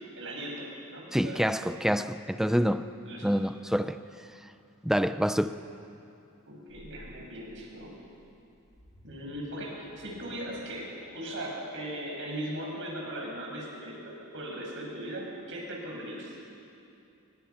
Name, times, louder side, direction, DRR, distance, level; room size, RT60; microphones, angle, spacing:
voice 1, 0.1-1.4 3.0-3.3 6.5-7.9 9.0-16.3, right 1 dB, 60° right, -2 dB, 6.9 m, -39 dB
voice 2, 1.1-2.9 3.2-4.0 4.8-5.6, equal, ahead, 11 dB, 0.6 m, -27 dB
sound 1, 6.7-15.4, left 2 dB, 80° left, 7.3 m, -50 dB
29.0 x 23.5 x 6.0 m, 2.7 s
head